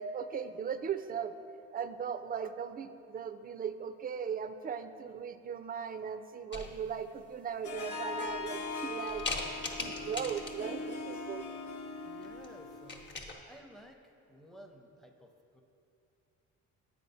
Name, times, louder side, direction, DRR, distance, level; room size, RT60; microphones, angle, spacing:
voice 1, 0.0-1.3 1.7-9.3 9.8-11.4, right 7 dB, 30° right, 11 dB, 0.4 m, -38 dB
sound 1, 6.5-7.1 7.7-7.8 8.3-8.7 9.1-10.8 12.2-12.5 12.7-13.3, left 3 dB, 35° left, 1.0 m, -40 dB
Harp, 7.6-13.1, left 3 dB, 75° left, 0.7 m, -40 dB
voice 2, 12.0-13.1 13.5-14.0 14.3-15.6, equal, ahead, 4 dB, 0.7 m, -54 dB
7.7 x 5.0 x 5.4 m, 2.6 s
cardioid pair, 90°, 30 cm